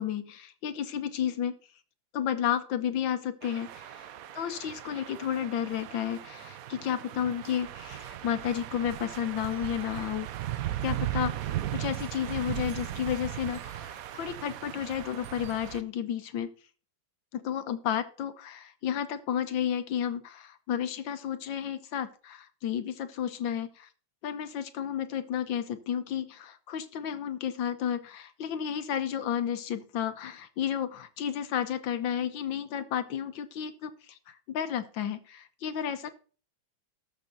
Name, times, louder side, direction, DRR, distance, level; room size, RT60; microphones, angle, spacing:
voice 1, 0.0-1.5 2.1-3.9 4.4-10.3 10.8-11.3 11.7-16.5 17.3-23.9 24.2-34.2 34.5-36.1, left 9 dB, 75° left, 10 dB, 1.5 m, -32 dB
sound 1, 3.4-15.8, right 13 dB, 80° right, 0.7 m, -37 dB
19.0 x 6.7 x 2.7 m, 0.39 s
omnidirectional pair, 2.2 m